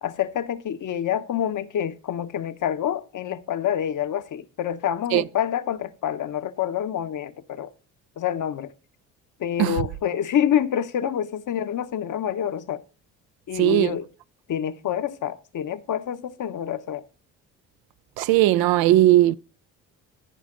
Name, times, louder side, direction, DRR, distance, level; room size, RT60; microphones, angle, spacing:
voice 1, 0.0-7.7 8.2-8.7 9.4-12.8 13.5-14.0 14.5-17.0, left 10 dB, 50° left, 0.9 m, -27 dB
voice 2, 13.5-14.0 18.2-19.4, right 15 dB, 65° right, 0.5 m, -18 dB
14.5 x 5.0 x 3.8 m
hypercardioid pair, 60°, 40 cm